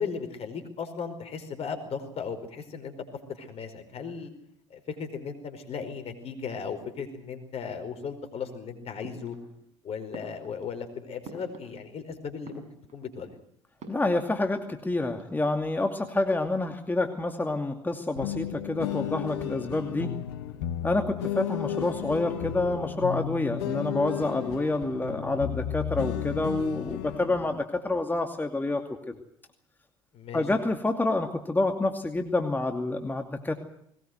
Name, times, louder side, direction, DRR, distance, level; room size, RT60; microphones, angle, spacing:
voice 1, 0.0-2.9 3.3-4.3 4.7-9.4 9.8-12.7 12.9-13.3 30.1-30.4, left 6 dB, 45° left, 7 dB, 4.8 m, -36 dB
sound 1, 9.0-9.7 10.1-12.0 12.3-13.2 13.8-14.4 14.7-14.8 15.0-15.7, right 3 dB, 55° right, 6.8 m, -48 dB
voice 2, 13.9-20.1 20.8-29.1 30.3-33.5, left 2 dB, 15° left, 5 dB, 2.5 m, -28 dB
sound 2, 18.2-27.6, left 11 dB, 75° left, 1.2 m, -33 dB
20.5 x 19.5 x 7.9 m, 0.70 s
hypercardioid pair, 60°, 14 cm